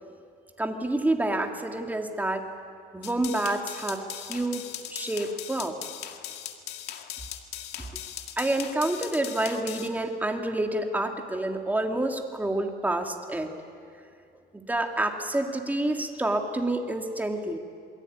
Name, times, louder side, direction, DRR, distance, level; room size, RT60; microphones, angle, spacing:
voice 1, 0.6-2.4 2.9-4.6 4.9-5.7 8.4-13.5 14.5-17.6, right 1 dB, 10° right, 3 dB, 2.8 m, -28 dB
sound 1, 3.0-9.9, left 11 dB, 80° left, 2.0 m, -39 dB
28.0 x 22.0 x 9.6 m, 2.4 s
cardioid pair, 110°, 17 cm